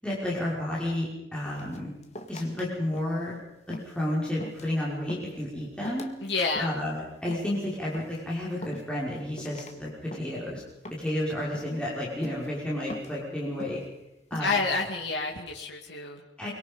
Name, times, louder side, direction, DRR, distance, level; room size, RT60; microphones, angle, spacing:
voice 1, 0.0-1.9 2.3-3.3 3.7-6.1 6.6-10.6 11.0-13.8 14.3-14.6 16.4-16.5, left 1 dB, 5° left, -6 dB, 5.6 m, -31 dB
sound 1, 1.5-2.7 2.9-3.3 3.7-4.0 4.4-4.8 5.1-5.4 5.8-6.2 6.6-6.9 7.3-7.6 7.9-8.2 8.6-9.1 9.4-9.8 10.1-10.5 10.8-11.2 11.5-11.9 12.2-12.5 12.9-13.2 13.6-13.9 14.3-14.6, left 1 dB, 40° left, 2.0 m, -43 dB
voice 2, 6.2-6.7 14.4-16.2, left 3 dB, 75° left, 0 dB, 2.6 m, -29 dB
25.5 x 24.0 x 5.5 m, 0.91 s
head